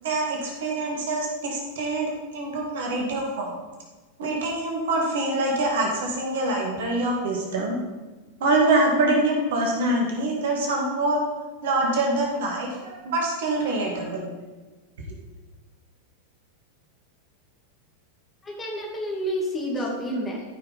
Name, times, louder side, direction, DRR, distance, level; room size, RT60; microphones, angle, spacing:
voice 1, 0.0-3.6 4.2-7.8 8.4-11.2 11.6-14.3, right 2 dB, 55° right, 0 dB, 2.1 m, -25 dB
voice 2, 18.4-20.4, equal, 15° left, -2 dB, 2.5 m, -29 dB
13.5 x 6.1 x 4.2 m, 1.3 s
figure-of-eight pair, 90°, 0 cm